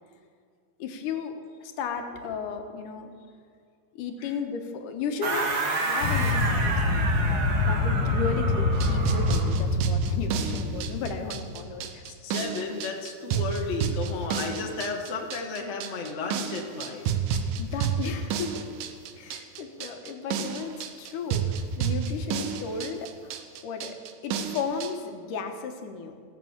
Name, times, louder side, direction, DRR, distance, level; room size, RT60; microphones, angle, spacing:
voice 1, 0.8-3.1 4.0-12.0 17.4-18.7 19.2-24.0 24.2-26.1, left 5 dB, 80° left, 5 dB, 2.5 m, -35 dB
sound 1, 5.2-9.6, right 3 dB, 50° right, 1.1 m, -30 dB
sound 2, 6.0-11.8, left 3 dB, 65° left, 1.3 m, -26 dB
sound 3, 8.7-24.9, right 7 dB, 85° right, 2.4 m, -30 dB
voice 2, 12.0-17.3, left 4 dB, 45° left, 1 dB, 0.8 m, -34 dB
18.5 x 6.8 x 7.2 m, 2.2 s
omnidirectional pair, 3.7 m